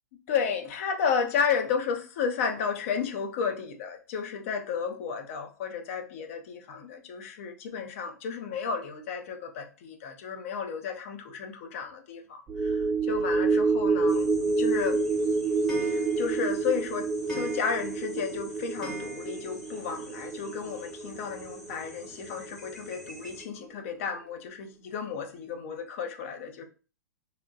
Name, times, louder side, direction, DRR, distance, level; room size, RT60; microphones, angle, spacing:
voice 1, 0.3-12.4 12.6-12.7 13.1-14.3 14.6-15.0 15.8-26.7, left 6 dB, 45° left, 0.5 m, -32 dB
sound 1, 12.5-23.1 23.4-23.6, right 4 dB, 15° right, 0.3 m, -28 dB
sound 2, 14.1-23.4, left 1 dB, 70° left, 1.3 m, -49 dB
Clock, 14.7-19.8 20.1-20.2 20.4-20.5 20.8-20.9 22.0-22.1 22.7-22.8 23.3-23.4 24.0-24.1 24.6-24.7 25.2-25.3, equal, 5° left, 0.9 m, -44 dB
2.8 x 2.0 x 2.6 m
figure-of-eight pair, 105°, 10 cm